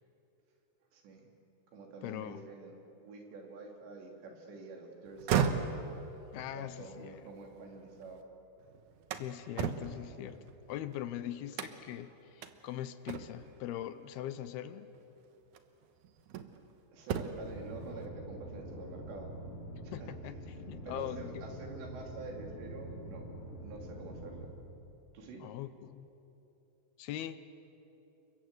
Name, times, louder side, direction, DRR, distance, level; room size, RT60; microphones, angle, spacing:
voice 1, 0.9-1.3 1.7-5.5 6.3-8.2 16.9-19.3 19.8-20.1 20.4-23.2 23.6-24.5 25.1-25.5, right 3 dB, 85° right, 1 dB, 5.2 m, -47 dB
voice 2, 2.0-2.5 6.3-7.2 9.1-14.9 19.9-21.4 25.4-26.1 27.0-27.4, left 12 dB, 75° left, 12 dB, 2.6 m, -41 dB
sound 1, 5.1-8.2 8.6-11.0 11.5-12.0 12.4-12.5 13.1-13.6 14.8-15.0 15.5-16.7 17.0-17.6, right 7 dB, 70° right, 1.9 m, -36 dB
sound 2, 17.4-24.4, right 1 dB, 30° left, 4.0 m, -45 dB
29.5 x 23.5 x 8.0 m, 3.0 s
omnidirectional pair, 4.9 m